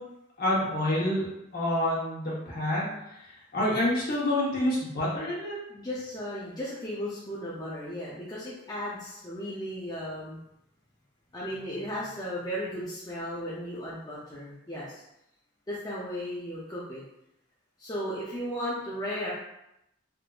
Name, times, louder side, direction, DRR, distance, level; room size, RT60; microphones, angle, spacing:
voice 1, 0.4-1.3 1.5-5.5, left 1 dB, 55° left, -6 dB, 1.1 m, -28 dB
voice 2, 5.7-10.4 11.3-15.0 15.7-17.0 17.8-19.3, equal, 20° left, -8 dB, 0.6 m, -35 dB
3.6 x 2.6 x 2.4 m, 0.82 s
head